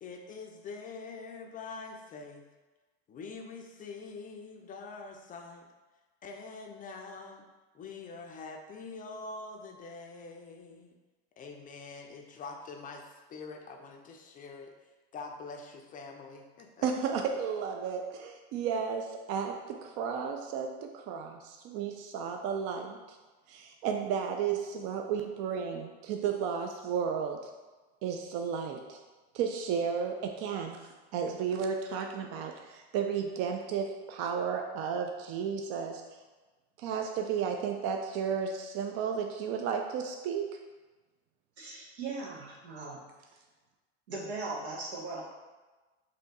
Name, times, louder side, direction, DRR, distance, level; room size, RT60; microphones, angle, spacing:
voice 1, 0.0-2.5 3.1-5.7 6.2-7.4 7.7-11.0 11.4-14.7 15.1-16.9, left 4 dB, 25° left, 3 dB, 0.4 m, -45 dB
voice 2, 16.8-23.2 23.5-27.4 28.0-29.0 29.3-30.8 31.1-36.0 36.8-40.5, right 7 dB, 50° right, 4 dB, 0.4 m, -33 dB
voice 3, 41.6-43.0 44.1-45.2, right 3 dB, 85° right, -3 dB, 1.2 m, -38 dB
3.4 x 2.7 x 4.1 m, 1.2 s
hypercardioid pair, 100°, 32 cm